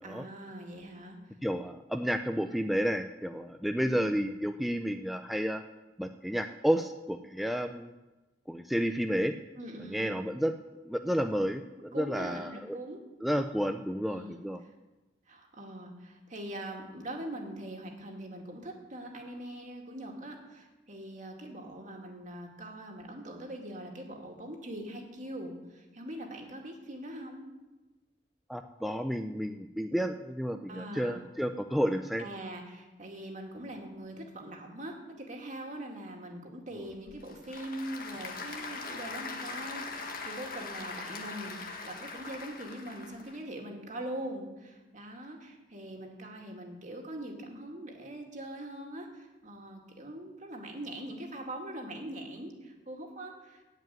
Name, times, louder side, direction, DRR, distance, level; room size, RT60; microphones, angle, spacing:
voice 1, 0.0-1.3 3.8-4.2 9.6-10.2 11.9-13.0 14.1-14.5 15.3-27.5 30.7-31.2 32.2-34.9 35.3-53.6, right 1 dB, 45° right, 2 dB, 2.1 m, -42 dB
voice 2, 1.4-5.6 6.0-7.9 8.5-9.4 9.9-10.5 10.9-12.8 13.2-14.6 28.5-32.3 36.8-36.9, equal, ahead, 6 dB, 0.4 m, -31 dB
Applause / Crowd, 36.9-43.4, left 4 dB, 55° left, 1.6 m, -41 dB
15.0 x 5.3 x 9.2 m, 1.1 s
head